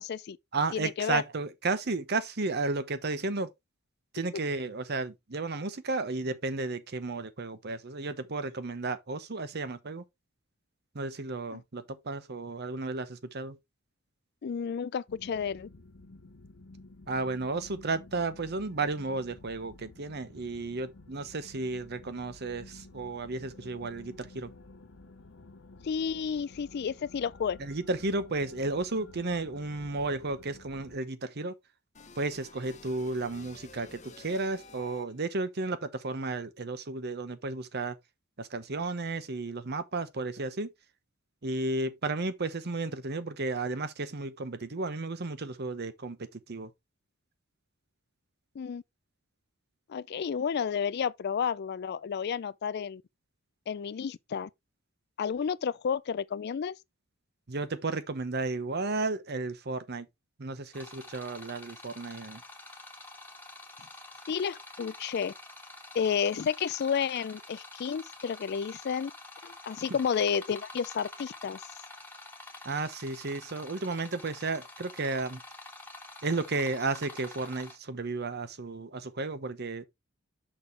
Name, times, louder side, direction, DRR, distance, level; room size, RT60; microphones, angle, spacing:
voice 1, 0.0-0.4 0.7-1.2 11.5-11.6 14.4-15.7 25.8-27.6 48.6-48.8 49.9-53.0 53.7-54.5 55.2-56.7 64.3-65.3 65.9-69.1 69.4-71.6, left 7 dB, 50° left, 0.4 m, -31 dB
voice 2, 0.5-3.5 4.1-10.0 10.9-13.6 17.1-24.5 27.6-31.5 32.2-38.0 38.4-40.7 41.4-46.7 57.5-60.1 60.4-62.4 72.6-75.4 76.2-79.9, right 3 dB, 55° right, 0.9 m, -33 dB
sound 1, 15.1-31.0, left 2 dB, 65° left, 0.8 m, -52 dB
sound 2, 31.9-35.4, left 3 dB, 35° left, 0.9 m, -51 dB
sound 3, 60.7-77.8, left 2 dB, 10° left, 1.4 m, -48 dB
6.2 x 6.1 x 3.3 m
head